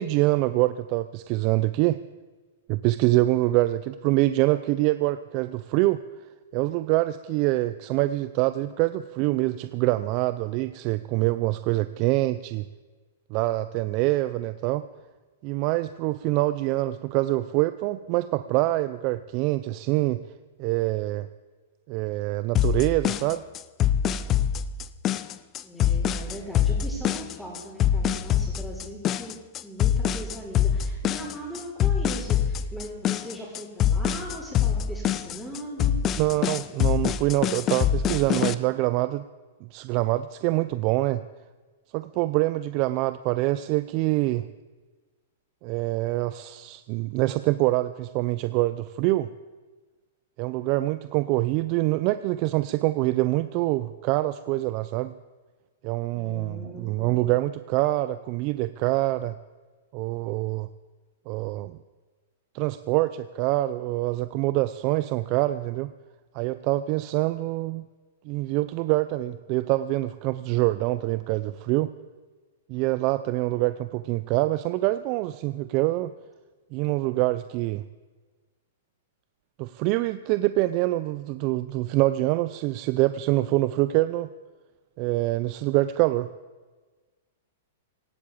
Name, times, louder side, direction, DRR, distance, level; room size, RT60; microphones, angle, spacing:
voice 1, 0.0-2.0 2.7-6.0 6.5-12.6 13.3-14.8 15.4-20.2 20.6-21.3 21.9-23.4 36.2-39.2 39.7-41.2 41.9-44.5 45.6-49.3 50.4-55.1 55.8-59.4 59.9-60.7 61.3-61.8 62.5-65.9 66.3-67.9 68.3-71.9 72.7-76.1 76.7-77.8 79.6-84.3 85.0-86.3, right 18 dB, 40° right, 13 dB, 0.5 m, -25 dB
sound 1, 22.5-38.5, left 9 dB, 30° left, 0.6 m, -24 dB
voice 2, 25.6-29.4 29.6-35.9 56.2-57.4, equal, ahead, -8 dB, 4.3 m, -39 dB
18.0 x 8.5 x 8.4 m, 1.3 s
hypercardioid pair, 135°, 0 cm